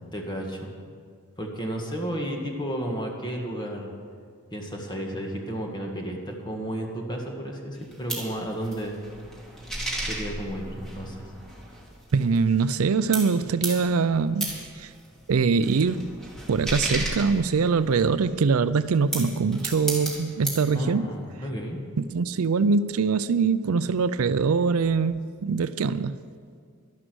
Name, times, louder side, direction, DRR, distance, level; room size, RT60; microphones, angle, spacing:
voice 1, 0.1-0.7 1.4-3.9 4.5-9.0 10.0-11.3 20.7-21.8, equal, 20° left, 1 dB, 1.7 m, -32 dB
sound 1, 7.8-12.9 13.1-18.1 18.8-20.7, right 1 dB, ahead, 2.5 m, -34 dB
voice 2, 12.1-14.9 15.3-16.1 16.5-21.1 22.0-26.2, right 5 dB, 70° right, 14 dB, 0.4 m, -23 dB
12.5 x 11.5 x 6.3 m, 2.1 s
head